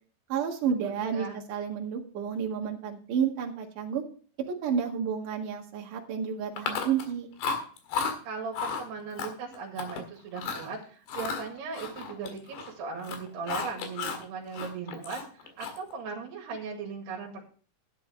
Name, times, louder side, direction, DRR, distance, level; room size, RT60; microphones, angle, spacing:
voice 1, 0.3-4.0 4.6-7.3, right 7 dB, 60° right, 1 dB, 3.1 m, -31 dB
voice 2, 0.8-1.4 8.3-17.5, right 5 dB, 85° right, -1 dB, 4.0 m, -38 dB
Chewing mastication, 6.6-7.1 7.4-8.1 8.5-8.8 9.2-10.0 10.3-10.7 11.1-12.7 13.0-14.2 14.5-15.9, left 5 dB, 75° left, 3.8 m, -33 dB
12.0 x 10.0 x 3.3 m, 0.42 s
omnidirectional pair, 4.6 m